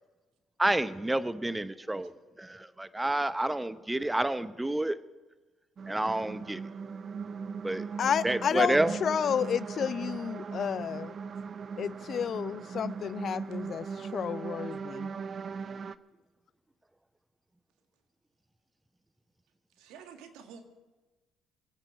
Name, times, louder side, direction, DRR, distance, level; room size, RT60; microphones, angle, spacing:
voice 1, 0.6-2.1 2.4-5.0 5.9-6.6 7.6-7.9 8.2-9.0, right 1 dB, 10° right, 0.8 m, -29 dB
sound 1, 5.8-16.0, right 5 dB, 45° right, 0.6 m, -39 dB
voice 2, 8.0-11.2 11.8-15.1, left 8 dB, 55° left, 0.5 m, -31 dB
voice 3, 19.8-20.6, right 7 dB, 75° right, 1.9 m, -49 dB
24.5 x 8.9 x 4.8 m
hypercardioid pair, 60°, 0 cm